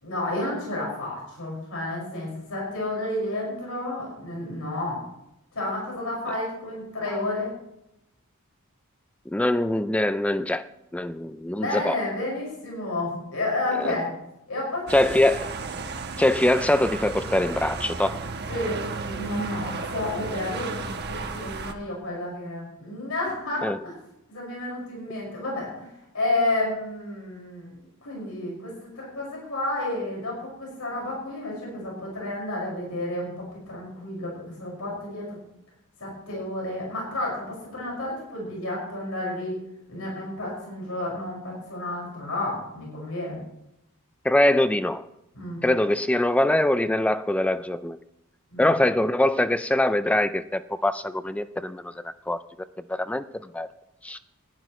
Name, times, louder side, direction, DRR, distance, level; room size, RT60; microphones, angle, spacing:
voice 1, 0.0-5.0 5.5-7.5 11.6-14.1 14.5-14.9 18.5-23.9 24.3-25.9 26.1-27.7 28.0-28.7 29.0-34.3 34.6-35.4 36.0-39.6 39.9-43.4 45.3-45.6 48.5-48.7, left 2 dB, 75° left, 5.6 m, -31 dB
voice 2, 9.3-10.7 10.9-12.0 13.8-13.9 14.9-15.5 16.2-18.2 23.6-23.8 44.2-45.0 45.6-48.0 48.6-52.4 52.9-53.2 53.5-53.7 54.0-54.2, left 1 dB, 5° left, 0.3 m, -23 dB
sound 1, 14.9-21.7, right 4 dB, 50° right, 1.1 m, -34 dB
20.0 x 12.0 x 3.1 m
head